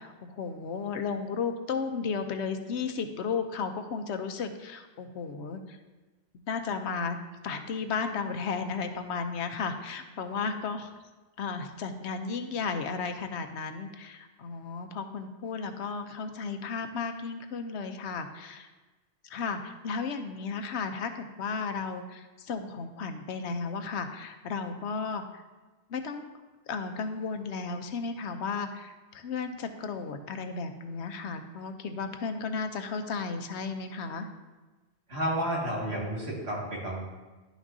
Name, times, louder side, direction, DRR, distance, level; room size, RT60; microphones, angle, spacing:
voice 1, 0.0-5.8 6.5-7.2 7.4-10.9 11.4-18.7 19.2-25.4 25.9-26.3 26.7-34.3, left 5 dB, 85° left, 7 dB, 1.0 m, -34 dB
voice 2, 35.1-37.0, right 1 dB, 70° right, -5 dB, 2.3 m, -31 dB
11.0 x 6.1 x 2.7 m, 1.2 s
omnidirectional pair, 1.1 m